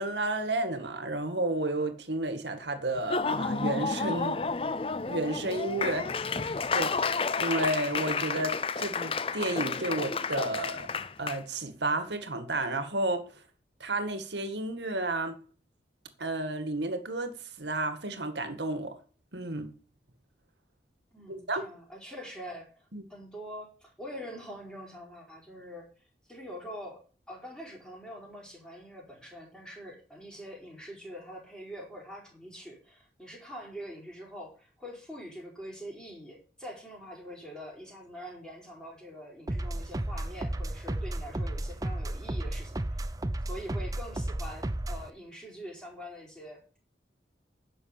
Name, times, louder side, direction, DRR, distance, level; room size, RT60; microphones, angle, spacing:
voice 1, 0.0-4.4 5.1-6.1 6.4-10.9 11.2-13.4 13.8-15.4 16.2-19.0 19.3-19.7 21.3-21.6 22.9-23.0, right 2 dB, 80° right, 1.9 m, -32 dB
Laughter / Applause, 3.0-11.4, left 4 dB, 30° left, 0.5 m, -31 dB
voice 2, 21.1-25.9 26.3-27.0 27.3-43.1 43.5-46.8, equal, 5° left, 4.8 m, -44 dB
sound 1, 39.5-45.1, right 1 dB, 20° right, 0.6 m, -33 dB
11.0 x 6.7 x 8.9 m
head